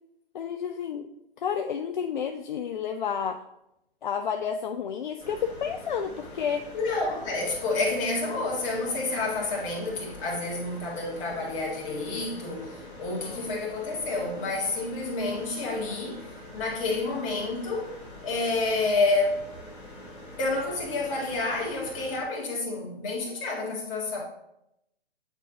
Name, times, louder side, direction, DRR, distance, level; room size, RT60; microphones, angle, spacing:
voice 1, 0.3-1.1 1.4-3.4 4.0-6.7 13.1-13.5, left 7 dB, 50° left, 6 dB, 0.5 m, -31 dB
sound 1, 5.2-22.2, left 1 dB, 15° left, 2.0 m, -45 dB
voice 2, 6.7-17.9 18.2-19.4 20.4-24.2, left 3 dB, 30° left, -3 dB, 1.9 m, -29 dB
8.9 x 4.3 x 2.7 m, 0.82 s
figure-of-eight pair, 135°, 31 cm